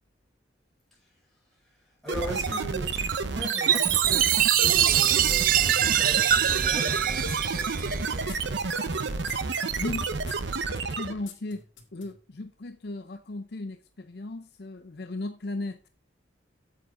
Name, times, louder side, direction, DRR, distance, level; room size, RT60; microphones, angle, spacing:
voice 1, 2.0-9.6, right 2 dB, ahead, 5.2 m, -40 dB
sound 1, 2.1-11.3, right 4 dB, 65° right, 0.8 m, -30 dB
Chime, 3.7-8.4, right 11 dB, 45° right, 0.4 m, -23 dB
sound 2, 4.3-12.1, left 7 dB, 75° left, 2.0 m, -47 dB
voice 2, 11.0-11.6 11.9-15.8, left 2 dB, 55° left, 0.6 m, -36 dB
8.9 x 7.6 x 3.8 m
head